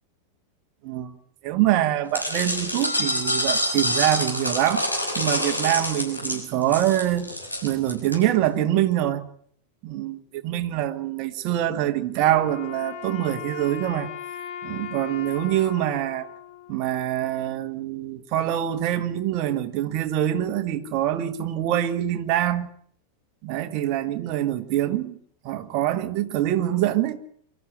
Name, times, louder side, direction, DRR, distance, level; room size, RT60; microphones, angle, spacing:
voice 1, 0.8-1.1 1.4-4.8 5.2-7.3 7.6-9.3 9.8-14.1 14.6-16.3 16.7-22.7 23.4-25.2 25.4-27.2, right 12 dB, 40° right, 1.6 m, -24 dB
sound 1, 2.1-8.2, left 1 dB, 90° left, 6.0 m, -26 dB
Wind instrument woodwind instrument, 12.2-17.4, left 9 dB, 45° left, 4.0 m, -38 dB
24.5 x 13.5 x 9.0 m
figure-of-eight pair, 90°, 0 cm